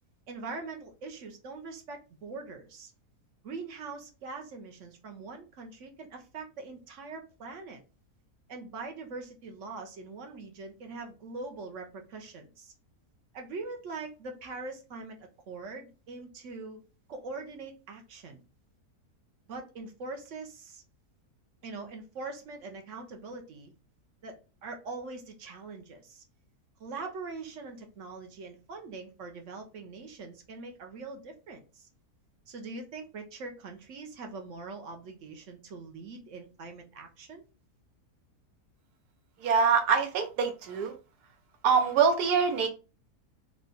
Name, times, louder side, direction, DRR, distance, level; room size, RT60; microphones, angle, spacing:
voice 1, 0.3-2.9 3.4-7.8 8.5-12.7 13.3-16.8 17.1-18.4 19.5-20.8 21.6-23.7 24.2-24.4 24.6-26.2 26.8-31.9 32.5-37.4, right 3 dB, 60° right, 4 dB, 0.9 m, -42 dB
voice 2, 39.4-40.9 41.6-42.7, right 6 dB, 85° right, 5 dB, 1.2 m, -24 dB
3.6 x 2.2 x 3.8 m, 0.32 s
omnidirectional pair, 1.6 m